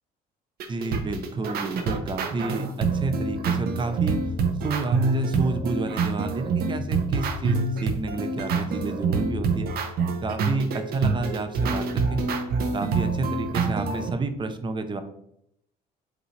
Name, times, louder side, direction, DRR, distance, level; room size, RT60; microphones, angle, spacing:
sound 1, 0.6-14.1, right 4 dB, 65° right, 0.9 m, -26 dB
voice 1, 0.7-4.2 4.6-9.7 10.2-12.2 12.7-15.0, right 3 dB, 30° right, 9 dB, 0.7 m, -30 dB
8.1 x 3.8 x 3.2 m, 0.77 s
cardioid pair, 110°, 17 cm